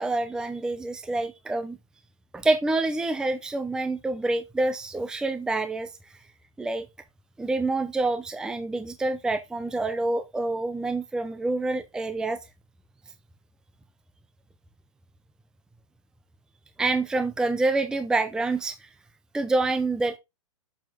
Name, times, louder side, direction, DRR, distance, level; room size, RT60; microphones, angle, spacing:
voice 1, 0.0-1.8 2.3-5.9 6.6-6.9 7.4-12.4 16.8-18.9 19.3-20.2, right 2 dB, 5° right, 0.6 m, -27 dB
7.1 x 5.6 x 3.5 m
hypercardioid pair, 125°, 17 cm